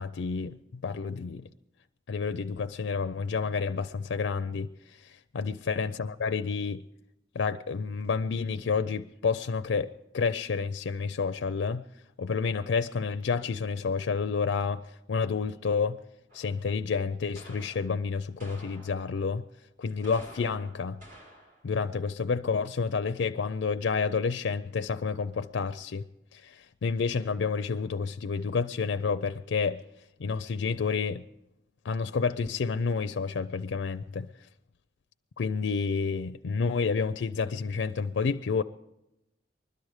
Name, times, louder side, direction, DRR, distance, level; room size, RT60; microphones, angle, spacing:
voice 1, 0.0-1.5 2.1-6.8 7.3-9.9 10.1-11.8 12.2-14.8 15.1-16.0 16.3-19.5 19.8-21.0 21.6-26.1 26.3-29.8 30.2-31.2 31.8-34.3 35.4-38.6, left 5 dB, 80° left, 0.4 m, -29 dB
sound 1, 16.3-16.7 17.4-17.9 18.4-19.3 19.9-21.7, equal, 45° right, 4.1 m, -50 dB
20.5 x 12.0 x 4.8 m
head